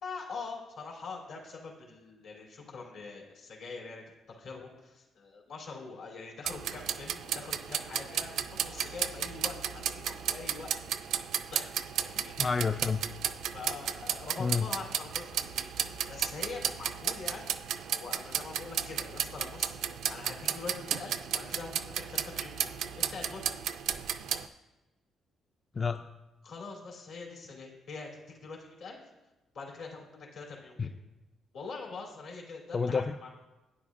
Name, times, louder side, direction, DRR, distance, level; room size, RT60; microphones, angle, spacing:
voice 1, 0.0-10.7 11.5-11.7 12.0-12.3 13.5-17.5 17.9-23.5 26.4-29.0 29.5-30.9 31.5-33.3, left 4 dB, 80° left, -2 dB, 3.1 m, -44 dB
sound 1, 6.5-24.5, right 9 dB, 80° right, 0.4 m, -34 dB
voice 2, 12.4-13.0 14.4-14.7 25.8-26.0 30.8-30.9 32.7-33.1, left 5 dB, 35° left, 8 dB, 0.3 m, -29 dB
12.5 x 9.5 x 2.5 m, 1.0 s
cardioid pair, 90°, 0 cm